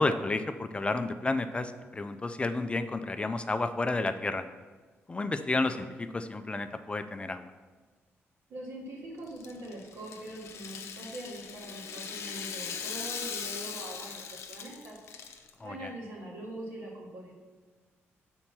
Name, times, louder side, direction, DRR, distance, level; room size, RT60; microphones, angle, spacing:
voice 1, 0.0-4.5 5.1-7.5 15.6-15.9, left 2 dB, 25° left, 9 dB, 0.4 m, -31 dB
voice 2, 8.5-15.0 15.6-17.3, right 1 dB, 80° right, -3 dB, 2.0 m, -42 dB
Rattle (instrument), 9.3-15.5, left 6 dB, 80° left, 0.6 m, -40 dB
5.7 x 4.4 x 6.0 m, 1.4 s
cardioid pair, 95°, 5 cm